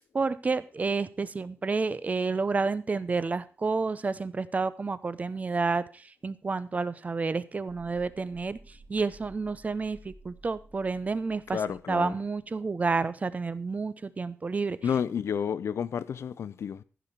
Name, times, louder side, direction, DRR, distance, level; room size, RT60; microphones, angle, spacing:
voice 1, 0.1-11.6 11.9-14.8, right 4 dB, 35° right, 0.7 m, -30 dB
sound 1, 7.7-12.6 12.8-12.9, right 2 dB, 50° right, 2.9 m, -54 dB
voice 2, 11.5-12.1 14.8-16.8, left 7 dB, 75° left, 0.5 m, -30 dB
15.0 x 5.2 x 5.9 m
wide cardioid pair, 120°, 5 cm